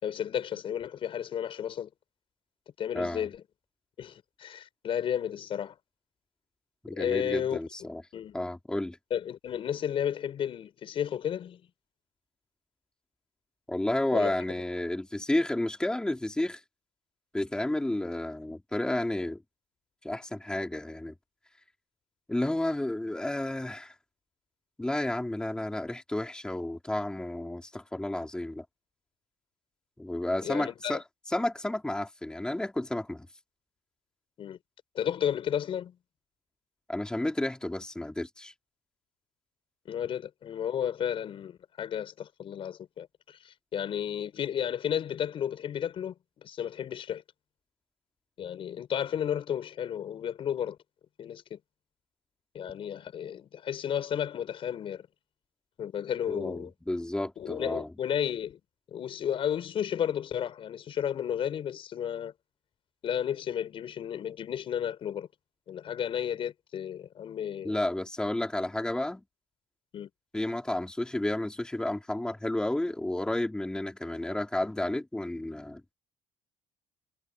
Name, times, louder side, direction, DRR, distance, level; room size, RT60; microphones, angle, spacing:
voice 1, 0.0-1.9 2.8-3.4 4.0-5.8 6.9-7.6 8.1-8.4 9.1-11.6 14.1-14.3 30.4-31.0 34.4-34.6 34.9-36.0 39.9-46.1 46.4-47.2 48.4-50.8 51.2-51.6 52.5-55.1 55.8-56.7 57.4-58.6 58.9-62.3 63.0-65.3 65.7-67.8 69.9-70.1, left 9 dB, 45° left, 5.6 m, -33 dB
voice 2, 2.9-3.3 6.8-8.0 8.3-9.0 13.7-16.6 17.3-19.4 20.0-21.1 22.3-23.9 24.8-28.6 30.0-31.0 31.3-33.3 36.9-38.5 56.3-57.9 67.6-69.2 70.3-75.8, left 1 dB, 5° left, 4.4 m, -31 dB
cardioid pair, 135°, 12 cm